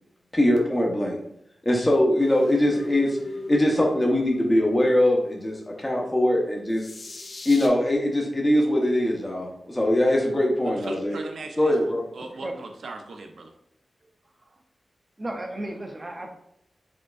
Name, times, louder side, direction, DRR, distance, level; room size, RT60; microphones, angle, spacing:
voice 1, 0.3-1.2 1.6-3.2 3.5-6.9 7.4-11.2 11.6-12.0, left 1 dB, 15° left, -1 dB, 0.8 m, -22 dB
sound 1, 2.2-7.7, left 2 dB, 55° left, 0.6 m, -39 dB
voice 2, 10.8-13.5, right 2 dB, 75° right, 4 dB, 0.6 m, -38 dB
voice 3, 15.2-16.4, right 1 dB, 25° right, 3 dB, 0.5 m, -34 dB
5.0 x 3.6 x 2.4 m, 0.74 s
wide cardioid pair, 105°, 0 cm